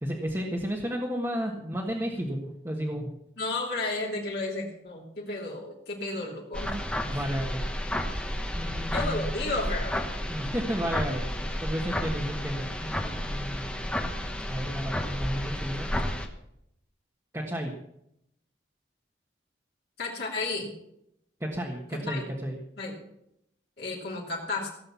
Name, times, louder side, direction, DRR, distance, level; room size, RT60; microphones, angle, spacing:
voice 1, 0.0-3.1 7.0-7.6 8.6-9.3 10.3-11.2 11.6-13.8 14.5-15.9 17.3-17.7 21.4-22.6, equal, 15° right, -2 dB, 1.4 m, -32 dB
voice 2, 3.4-6.8 8.9-10.0 20.0-20.7 21.9-22.2 22.8-23.0 23.8-24.7, left 2 dB, 60° left, -3 dB, 3.0 m, -32 dB
sound 1, 6.5-16.3, left 1 dB, 5° left, 1.1 m, -32 dB
17.0 x 7.8 x 7.0 m, 0.78 s
head